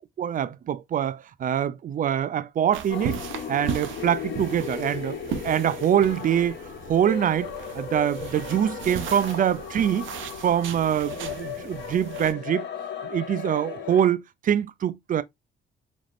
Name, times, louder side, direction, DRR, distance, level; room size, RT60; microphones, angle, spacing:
voice 1, 0.2-3.2 3.5-6.6 6.9-10.1 10.4-12.7 13.1-15.2, right 9 dB, 45° right, 0.4 m, -24 dB
sound 1, 2.7-12.3, right 7 dB, 75° right, 0.7 m, -37 dB
sound 2, 2.9-14.0, left 7 dB, 60° left, 1.0 m, -36 dB
3.7 x 3.5 x 2.3 m
cardioid pair, 90°, 20 cm